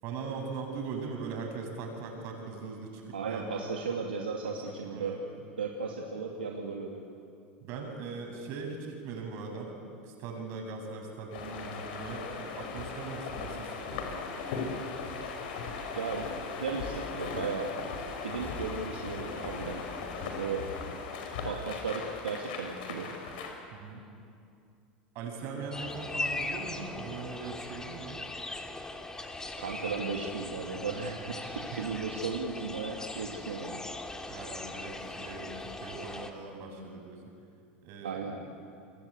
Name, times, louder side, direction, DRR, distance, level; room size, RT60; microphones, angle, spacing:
voice 1, 0.0-3.6 4.4-5.2 7.6-14.2 23.7-24.0 25.1-28.2 31.7-31.8 34.3-37.2 37.8-38.4, right 4 dB, 55° right, 2 dB, 7.9 m, -40 dB
voice 2, 3.1-5.1 5.6-7.0 16.0-16.3 16.5-17.7 18.2-19.8 20.1-20.6 21.4-23.1 29.6-33.8 38.0-38.4, right 5 dB, 90° right, 0 dB, 2.4 m, -35 dB
sound 1, 11.3-23.5, left 4 dB, 70° left, 5.5 m, -38 dB
Explosion, 18.4-22.3 22.8-22.9, left 4 dB, 35° left, 3.0 m, -49 dB
sound 2, 25.7-36.3, left 2 dB, 10° left, 2.7 m, -39 dB
29.5 x 23.5 x 8.5 m, 2.4 s
hypercardioid pair, 90°, 5 cm